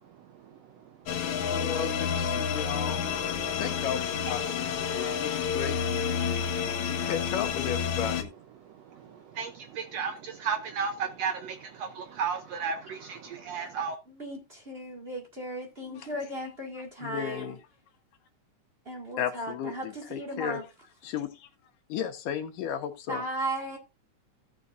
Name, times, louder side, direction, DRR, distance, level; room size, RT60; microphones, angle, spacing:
sound 1, 1.1-8.2, left 7 dB, 70° left, 2.5 m, -29 dB
voice 1, 1.5-3.0 3.6-5.8 6.8-8.3 16.0-16.1 17.0-17.6 19.2-20.6 21.0-21.5 21.9-23.2, left 9 dB, 90° left, 3.0 m, -34 dB
voice 2, 9.8-11.5 12.0-13.2 13.5-13.9, right 6 dB, 75° right, 1.6 m, -32 dB
voice 3, 14.1-17.6 18.9-20.6 23.1-23.8, right 1 dB, 20° right, 1.8 m, -36 dB
16.0 x 6.9 x 2.6 m
omnidirectional pair, 3.7 m